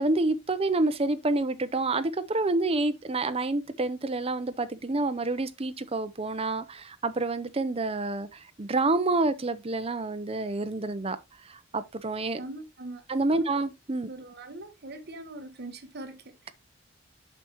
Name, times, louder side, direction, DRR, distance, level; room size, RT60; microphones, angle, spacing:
voice 1, 0.0-11.2 11.5-12.4 13.1-14.1, right 2 dB, 30° right, 0.7 m, -28 dB
voice 2, 12.3-13.0 13.3-13.5 14.0-16.5, right 2 dB, 60° right, 1.2 m, -42 dB
8.1 x 5.8 x 3.0 m
head